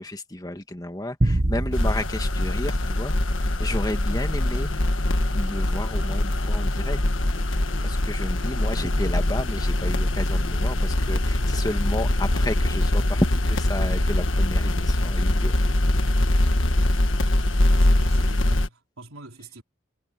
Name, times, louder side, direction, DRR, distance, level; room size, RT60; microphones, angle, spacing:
voice 1, 0.0-4.7 5.3-7.0 7.8-15.6, left 1 dB, 20° left, 1.8 m, -32 dB
sound 1, 1.2-3.7, right 1 dB, 40° right, 1.2 m, -27 dB
sound 2, 1.7-18.7, left 1 dB, 70° left, 1.5 m, -23 dB
voice 2, 17.7-19.6, right 2 dB, 90° right, 4.2 m, -43 dB
head